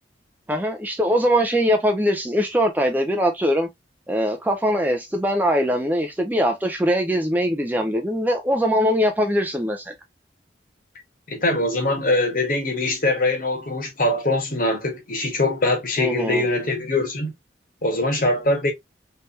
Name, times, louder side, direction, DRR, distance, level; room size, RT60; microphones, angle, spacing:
voice 1, 0.5-3.7 4.1-9.9 16.0-16.4, equal, 10° right, 0.6 m, -22 dB
voice 2, 11.3-17.3 17.8-18.7, left 2 dB, 50° left, 1.3 m, -22 dB
3.3 x 3.2 x 2.7 m
head